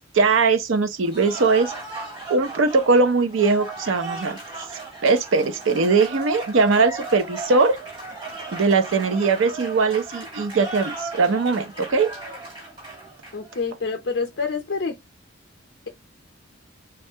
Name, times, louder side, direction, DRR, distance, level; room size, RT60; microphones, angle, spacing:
voice 1, 0.1-1.7 2.3-4.4 5.0-7.8 8.5-12.1, right 4 dB, 75° right, 0.5 m, -20 dB
Cheering / Applause, 1.0-13.6, right 3 dB, 25° right, 1.4 m, -36 dB
voice 2, 13.3-15.0, left 4 dB, 60° left, 0.5 m, -27 dB
3.2 x 2.3 x 2.6 m
head